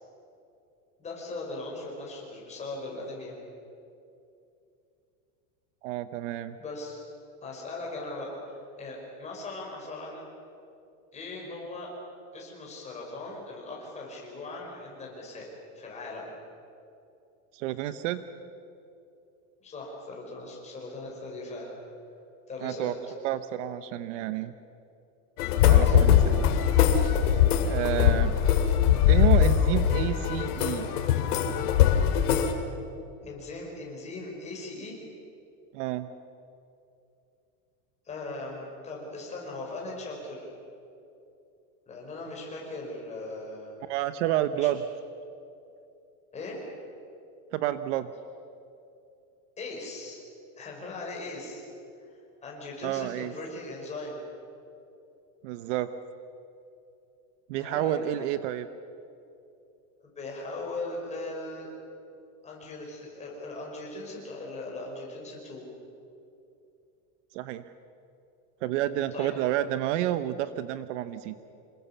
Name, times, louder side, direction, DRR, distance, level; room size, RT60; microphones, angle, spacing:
voice 1, 1.0-3.3 6.6-7.0 7.4-10.2 11.1-11.9 12.3-15.5 15.8-16.3 19.6-21.7 22.5-23.0 25.7-26.0 33.2-35.0 38.1-40.5 41.9-43.7 44.5-44.7 46.3-46.6 49.6-50.2 50.6-51.7 52.4-54.2 57.6-58.3 60.0-61.7 62.4-65.6 69.1-69.3, left 2 dB, 15° left, -2 dB, 5.5 m, -39 dB
voice 2, 5.8-6.6 17.5-18.2 22.6-23.0 23.2-24.5 25.6-26.5 27.6-28.3 29.1-30.9 35.7-36.1 43.9-44.8 47.5-48.1 52.8-53.3 55.4-55.9 57.5-58.7 67.3-67.6 68.6-71.4, right 13 dB, 55° right, 12 dB, 0.9 m, -29 dB
sound 1, 25.4-32.5, left 10 dB, 80° left, 2.8 m, -22 dB
27.0 x 21.0 x 7.2 m, 2.7 s
supercardioid pair, 170°, 44 cm